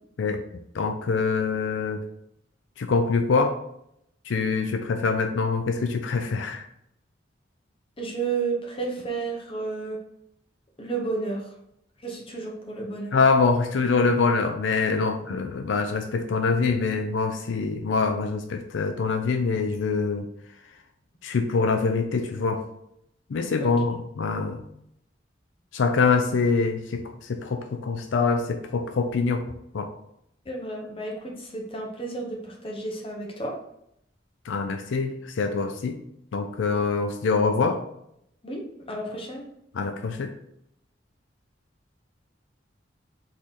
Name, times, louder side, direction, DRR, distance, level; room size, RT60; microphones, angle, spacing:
voice 1, 0.7-2.0 2.8-3.6 4.3-6.7 13.1-20.3 21.2-22.7 23.3-24.6 25.7-27.0 27.3-29.9 34.5-36.0 36.3-37.8 39.7-40.3, left 4 dB, 85° left, 6 dB, 0.4 m, -24 dB
voice 2, 8.0-10.0 10.8-11.5 12.0-13.2 23.6-24.0 30.4-33.5 38.4-39.4, right 3 dB, 30° left, 0 dB, 1.0 m, -32 dB
3.7 x 3.2 x 4.0 m, 0.76 s
head